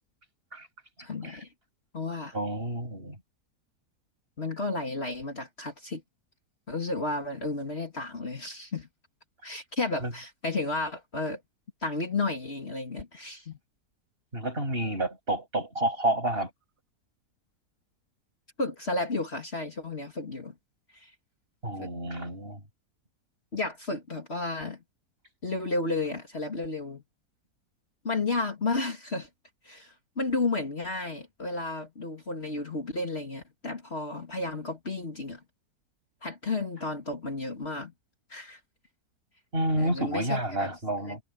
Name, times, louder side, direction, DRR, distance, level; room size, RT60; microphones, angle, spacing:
voice 1, 1.0-1.5 1.9-2.3 4.4-6.0 6.7-8.9 9.4-11.4 11.8-13.6 18.6-20.5 20.9-21.1 21.8-21.9 23.5-24.8 25.4-27.0 28.0-29.3 29.6-35.4 36.2-37.9 38.3-38.6 39.8-40.8 41.1-41.2, left 3 dB, 40° left, 2.7 m, -32 dB
voice 2, 2.3-3.1 10.0-10.1 14.3-16.5 21.6-22.6 39.5-41.2, right 1 dB, 35° right, 8.3 m, -29 dB
omnidirectional pair, 1.7 m